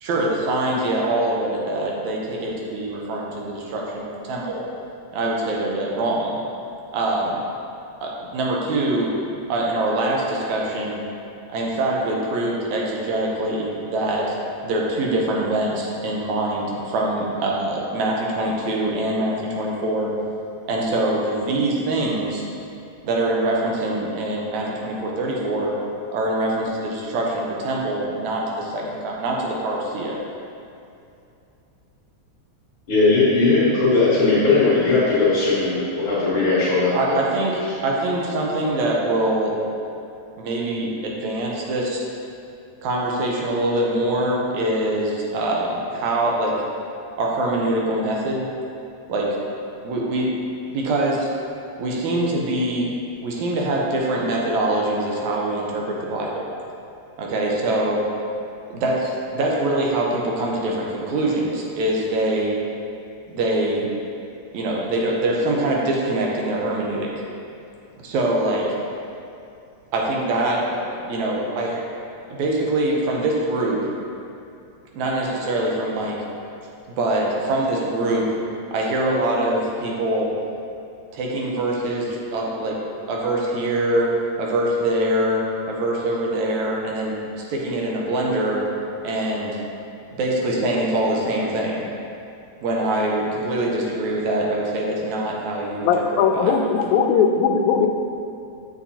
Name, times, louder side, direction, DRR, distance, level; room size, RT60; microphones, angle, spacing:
voice 1, 0.0-4.6 5.1-6.4 6.9-7.4 8.0-9.1 9.5-11.0 11.5-14.4 14.6-20.1 20.7-22.4 23.0-25.7 26.1-30.2 36.9-39.6 40.4-42.1 42.8-46.6 47.2-48.4 49.1-49.3 49.8-50.3 50.7-51.3 51.8-52.9 53.2-56.5 57.2-58.0 58.7-62.6 63.3-63.9 64.5-67.1 68.0-68.7 69.9-71.8 72.3-73.8 74.9-76.2 76.9-78.3 78.7-80.3 81.1-82.8 83.1-84.1 84.4-85.4 85.7-88.7 89.0-89.6 90.2-91.9 92.6-96.1 96.3-96.7, right 1 dB, 75° right, -2 dB, 2.2 m, -24 dB
voice 2, 32.9-36.9, left 3 dB, 50° left, -11 dB, 2.2 m, -18 dB
voice 3, 95.9-97.9, left 6 dB, 85° left, 4 dB, 1.9 m, -19 dB
7.1 x 7.0 x 2.8 m, 2.6 s
omnidirectional pair, 3.3 m